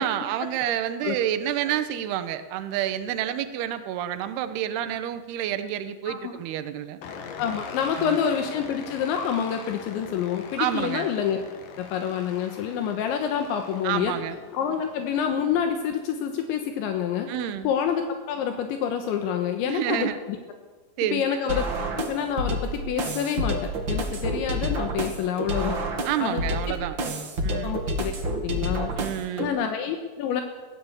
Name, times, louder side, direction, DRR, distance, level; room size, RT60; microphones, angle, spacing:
voice 1, 0.0-7.0 8.0-8.2 10.6-11.1 13.8-14.4 17.3-17.7 19.7-20.2 21.0-21.2 21.5-21.6 26.0-27.0 27.4-27.7 29.0-29.6, right 11 dB, 70° right, 10 dB, 2.9 m, -29 dB
sound 1, 7.0-15.7, left 5 dB, 55° left, 3.1 m, -42 dB
voice 2, 7.4-11.4 11.8-14.1 14.5-17.3 17.7-20.4 21.1-21.7 22.0-25.8 26.2-26.8 27.6-28.1 28.4-28.9 29.4-30.4, left 8 dB, 75° left, 5 dB, 3.6 m, -27 dB
sound 2, 21.5-29.5, right 1 dB, 45° right, 1.6 m, -29 dB
21.5 x 15.5 x 8.2 m, 1.3 s
omnidirectional pair, 5.3 m